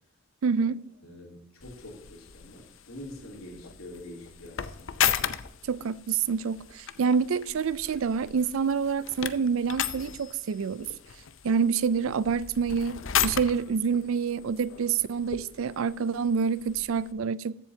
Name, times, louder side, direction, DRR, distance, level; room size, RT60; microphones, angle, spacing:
voice 1, 0.4-0.8 5.7-10.9 11.4-17.6, right 6 dB, 70° right, 0.4 m, -27 dB
voice 2, 1.0-5.0, left 1 dB, 80° left, 3.0 m, -45 dB
sound 1, 1.6-17.1, left 9 dB, 65° left, 0.6 m, -35 dB
14.5 x 7.8 x 2.8 m
head